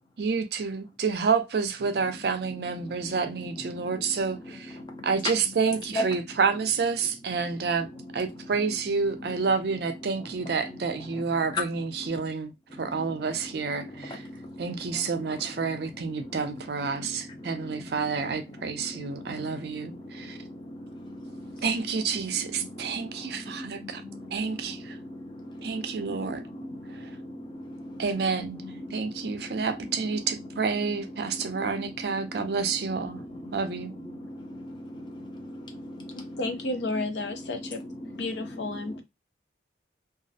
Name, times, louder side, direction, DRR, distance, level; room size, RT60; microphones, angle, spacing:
voice 1, 0.2-4.8 5.0-14.2 14.6-20.4 21.6-24.0 24.3-25.0 25.6-26.4 26.9-27.1 28.0-28.6 28.9-33.2 33.5-33.9, right 5 dB, 65° right, 0.4 m, -29 dB
voice 2, 19.0-21.6 22.5-28.0 28.8-29.6 33.4-33.6 34.2-36.4 38.0-38.3 38.9-39.0, equal, 25° left, 0.5 m, -39 dB
voice 3, 36.1-37.8 38.1-39.0, left 2 dB, 80° left, 0.5 m, -32 dB
2.3 x 2.0 x 2.6 m
head